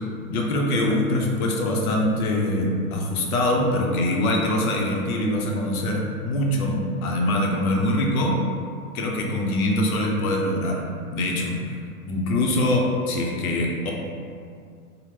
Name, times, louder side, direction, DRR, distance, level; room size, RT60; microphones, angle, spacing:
voice 1, 0.3-8.4 8.9-11.6 12.1-13.9, left 1 dB, 70° left, 0 dB, 0.7 m, -23 dB
2.8 x 2.0 x 3.3 m, 2.3 s
hypercardioid pair, 125°, 44 cm